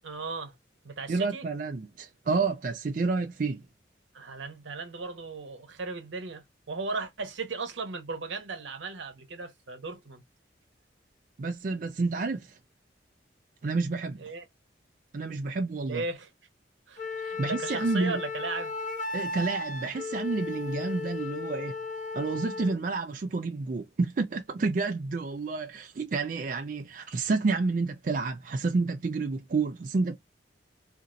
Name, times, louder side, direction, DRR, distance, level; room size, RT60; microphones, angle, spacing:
voice 1, 0.0-0.5 0.8-1.5 4.1-10.2 14.2-14.4 15.8-16.3 16.9-18.7, right 4 dB, 80° right, 0.8 m, -36 dB
voice 2, 1.1-3.7 11.4-12.6 13.6-14.2 15.1-16.0 17.4-18.2 19.1-21.8 22.1-30.2, right 3 dB, 45° right, 0.4 m, -29 dB
Wind instrument woodwind instrument, 17.0-22.8, left 4 dB, 40° left, 0.5 m, -35 dB
2.8 x 2.5 x 2.5 m
head